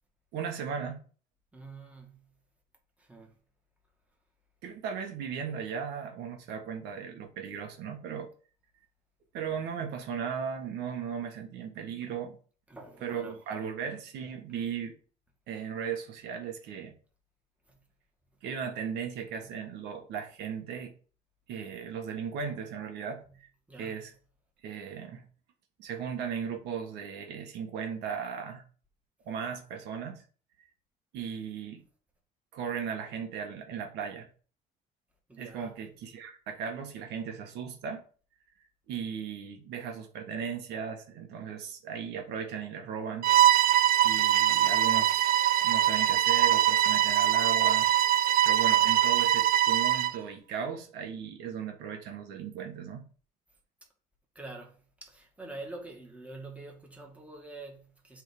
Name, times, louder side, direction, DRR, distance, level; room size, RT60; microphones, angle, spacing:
voice 1, 0.3-1.0 4.6-8.3 9.3-12.4 13.0-14.9 15.5-17.0 18.4-20.9 21.5-23.5 23.8-24.1 24.6-25.3 25.8-28.6 29.2-30.2 30.6-30.7 31.1-31.8 32.5-34.3 35.4-38.0 38.9-43.3 44.0-45.3 45.6-47.9 48.4-53.1, right 7 dB, 85° right, 1.5 m, -37 dB
voice 2, 1.5-2.4 3.0-3.4 12.7-13.4 17.7-17.8 19.4-19.5 23.3-23.4 23.7-24.1 35.3-35.8 54.4-58.2, right 2 dB, 10° right, 2.1 m, -46 dB
Bowed string instrument, 43.2-50.2, right 12 dB, 60° right, 0.4 m, -23 dB
7.7 x 3.7 x 5.3 m
cardioid pair, 110°, 17 cm